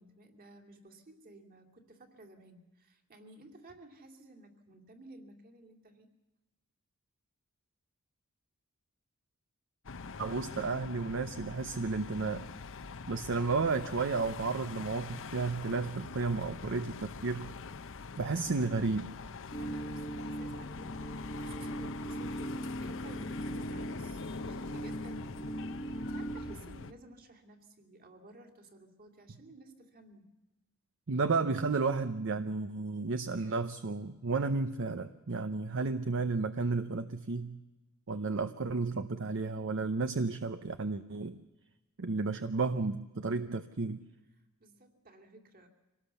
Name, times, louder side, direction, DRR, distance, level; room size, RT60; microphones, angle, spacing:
voice 1, 0.0-6.1 19.6-30.3 44.3-45.7, right 2 dB, 40° right, 4 dB, 2.7 m, -55 dB
sound 1, 9.8-26.9, left 4 dB, 60° left, 0.8 m, -44 dB
voice 2, 10.2-12.4 13.1-17.5 18.2-19.1 31.1-37.6 38.1-41.4 42.0-44.0, right 4 dB, 60° right, 10 dB, 0.7 m, -32 dB
sound 2, 19.5-26.6, right 1 dB, 30° left, 1.2 m, -39 dB
25.0 x 18.5 x 7.0 m, 1.1 s
head